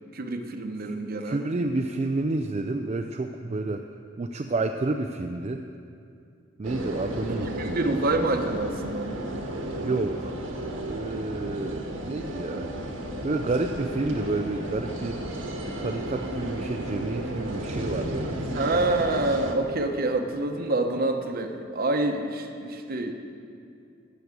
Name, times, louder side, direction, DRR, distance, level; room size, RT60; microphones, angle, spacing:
voice 1, 0.1-1.4 7.6-9.2 18.5-23.1, right 2 dB, 50° right, 5 dB, 0.9 m, -27 dB
voice 2, 0.8-3.8 4.2-5.6 6.6-8.0 9.8-10.4 10.9-12.7 13.2-15.3 15.8-18.8, right 2 dB, 35° right, 5 dB, 0.4 m, -30 dB
sound 1, 6.6-19.6, right 1 dB, 90° right, 1.5 m, -33 dB
13.0 x 6.3 x 8.2 m, 2.5 s
head